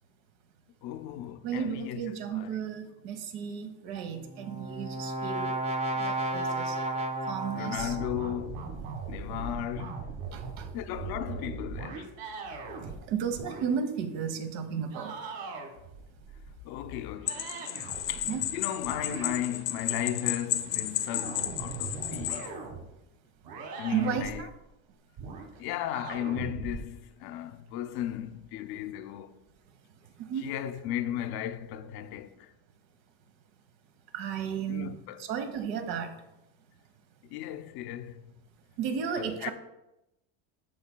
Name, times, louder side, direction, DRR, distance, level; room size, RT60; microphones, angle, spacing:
voice 1, 0.8-2.0 2.3-2.6 7.5-8.8 9.1-10.2 10.7-12.2 16.6-17.5 18.1-22.5 23.8-24.5 25.6-29.4 30.4-32.5 34.4-35.3 37.2-38.2 39.2-39.5, left 11 dB, 55° left, 0.5 m, -36 dB
voice 2, 1.4-5.5 6.0-6.8 7.3-8.0 10.3-10.7 13.1-15.1 18.3-18.4 23.9-24.5 30.2-30.5 34.1-36.1 38.8-39.5, right 7 dB, 90° right, 1.2 m, -33 dB
Brass instrument, 4.1-8.3, right 1 dB, 15° right, 0.6 m, -33 dB
sound 1, 7.8-13.0 13.3-13.7 14.9-18.6 18.8-20.0 20.9-22.9 23.4-24.6 25.2-25.5 25.9-26.8, right 4 dB, 60° right, 1.6 m, -40 dB
sound 2, 17.3-22.5, left 12 dB, 80° left, 0.9 m, -33 dB
14.0 x 5.0 x 2.2 m
cardioid pair, 145°, 48 cm